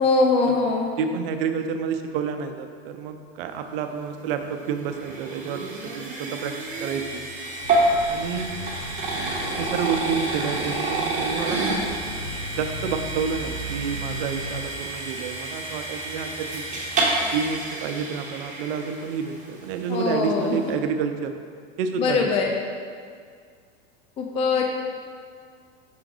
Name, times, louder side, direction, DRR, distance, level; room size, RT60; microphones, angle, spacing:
voice 1, 0.0-0.9 19.9-20.6 22.0-22.5 24.2-24.6, left 4 dB, 20° left, 1 dB, 0.4 m, -22 dB
voice 2, 1.0-7.3 8.1-8.5 9.6-12.0 12.6-16.8 17.3-21.3 21.8-22.3, right 6 dB, 65° right, 7 dB, 0.6 m, -29 dB
sound 1, 4.2-19.4, right 2 dB, 25° right, 1.3 m, -29 dB
sound 2, 7.6-14.7, equal, 85° left, 1.3 m, -37 dB
5.9 x 4.6 x 3.8 m, 2.1 s
supercardioid pair, 115°, 31 cm